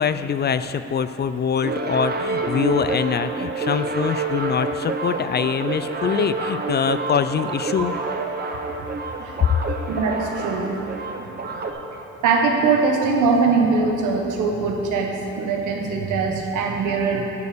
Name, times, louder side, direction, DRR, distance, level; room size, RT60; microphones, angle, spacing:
voice 1, 0.0-7.9 9.5-9.6, left 7 dB, 35° left, 12 dB, 0.4 m, -24 dB
sound 1, 1.6-11.7, right 3 dB, 35° right, 1.0 m, -28 dB
voice 2, 7.5-8.4 9.1-9.4 9.9-10.8 12.2-17.2, right 4 dB, 85° right, 2 dB, 1.3 m, -22 dB
11.5 x 5.2 x 6.6 m, 3.0 s
cardioid pair, 90°, 30 cm